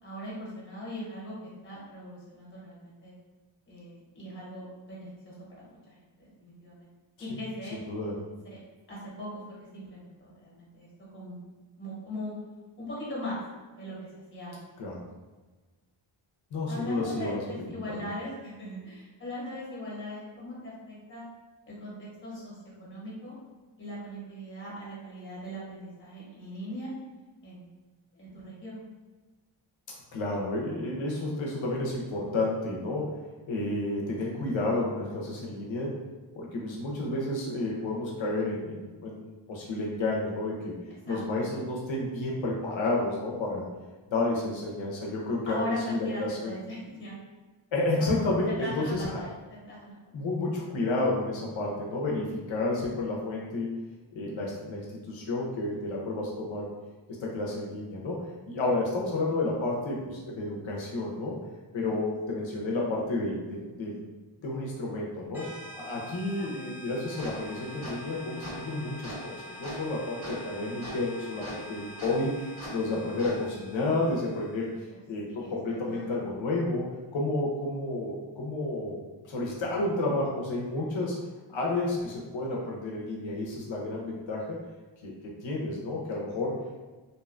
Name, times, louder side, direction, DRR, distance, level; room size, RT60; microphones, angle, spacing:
voice 1, 0.0-3.1 3.7-6.9 7.2-7.8 8.5-8.6 8.9-9.4 9.7-11.4 11.8-12.3 12.8-13.4 13.8-14.0 14.3-14.6 16.7-21.2 21.7-23.4 23.8-26.9 27.4-27.7 28.1-28.8 41.1-41.5 45.5-47.2 48.0-50.2 61.8-62.0 66.4-66.7 74.9-76.2, left 1 dB, 25° left, -7 dB, 0.9 m, -40 dB
voice 2, 16.5-17.4 30.1-33.2 33.5-35.9 36.3-40.7 41.1-43.6 44.1-46.4 47.7-49.2 50.1-53.8 54.1-56.7 57.2-61.4 61.7-64.0 64.4-65.5 65.8-74.7 75.1-76.9 77.1-81.2 81.5-84.6 85.0-85.1 85.4-86.5, left 2 dB, 65° left, -3 dB, 0.6 m, -31 dB
sound 1, 65.3-74.7, equal, 5° right, 0.4 m, -47 dB
sound 2, 67.0-73.4, left 1 dB, 70° right, 1.3 m, -43 dB
2.6 x 2.2 x 2.4 m, 1.3 s
wide cardioid pair, 130°, 50 cm